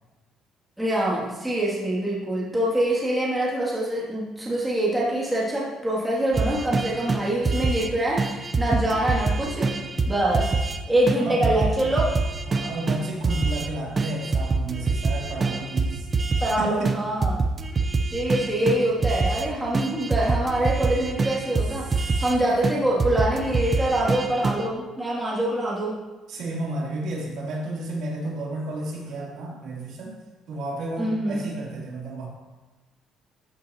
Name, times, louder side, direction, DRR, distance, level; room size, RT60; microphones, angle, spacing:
voice 1, 0.8-9.8 10.1-10.5 10.9-12.1 16.4-17.4 18.1-26.0 31.0-31.5, right 1 dB, 5° right, -6 dB, 2.5 m, -25 dB
sound 1, 6.3-7.9 8.2-10.8 11.1-11.2 11.4-13.7 14.0-16.6 16.8-19.5 19.7-22.4 22.6-24.7, right 3 dB, 25° right, 0.7 m, -25 dB
voice 2, 11.2-11.7 12.5-16.1 16.6-17.0 22.0-22.2 26.3-30.2 30.5-32.3, right 2 dB, 65° right, -4 dB, 3.2 m, -32 dB
13.5 x 8.4 x 2.9 m, 1.2 s
cardioid pair, 145°, 0 cm